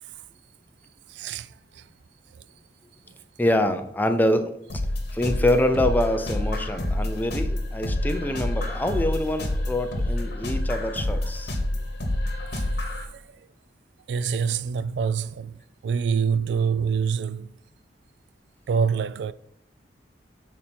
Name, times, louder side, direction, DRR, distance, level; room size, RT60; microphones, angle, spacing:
voice 1, 1.1-1.9 2.3-2.4 11.2-11.3 11.7-11.8 12.9-13.5 14.1-17.5 18.7-19.3, right 6 dB, 75° right, 0.3 m, -26 dB
voice 2, 3.4-4.8 5.1-11.6, left 1 dB, 10° left, 0.5 m, -25 dB
sound 1, 4.7-13.0, left 1 dB, 65° left, 1.4 m, -28 dB
7.0 x 4.3 x 4.2 m
head